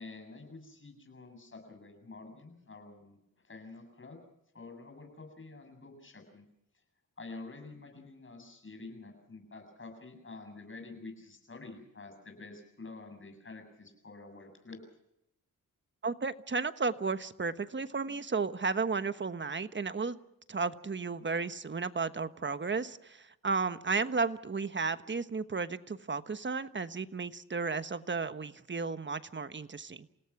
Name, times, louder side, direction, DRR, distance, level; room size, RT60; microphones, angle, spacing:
voice 1, 0.0-3.2 3.4-4.2 4.5-6.4 7.2-14.8, left 3 dB, 40° left, 5 dB, 7.8 m, -48 dB
voice 2, 16.0-20.2 20.5-30.1, right 4 dB, 35° right, 12 dB, 1.2 m, -33 dB
29.0 x 17.5 x 6.0 m, 0.83 s
cardioid pair, 75°, 33 cm